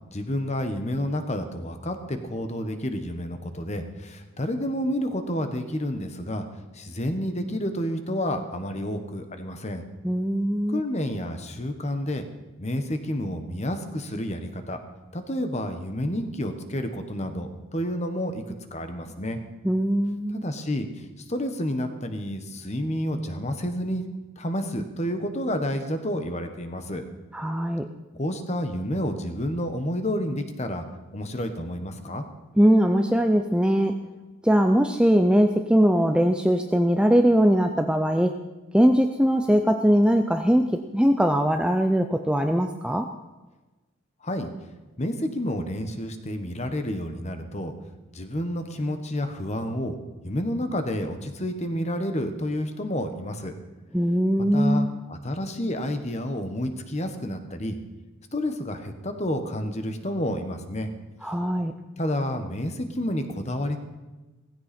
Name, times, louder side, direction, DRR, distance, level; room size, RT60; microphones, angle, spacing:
voice 1, 0.1-6.5 6.7-9.8 10.7-12.2 12.6-14.8 15.1-19.4 20.3-24.0 24.4-27.0 28.1-30.9 31.1-32.2 44.2-44.5 45.0-47.7 48.1-50.0 50.2-53.5 54.5-57.8 58.3-60.9 62.0-63.8, left 1 dB, 30° left, 7 dB, 1.3 m, -30 dB
voice 2, 10.0-10.8 19.6-20.4 27.3-27.9 32.6-33.9 34.4-38.3 38.7-40.7 40.9-43.1 53.9-54.9 61.2-61.7, equal, 5° right, 6 dB, 0.4 m, -21 dB
16.5 x 15.5 x 4.4 m, 1.1 s
head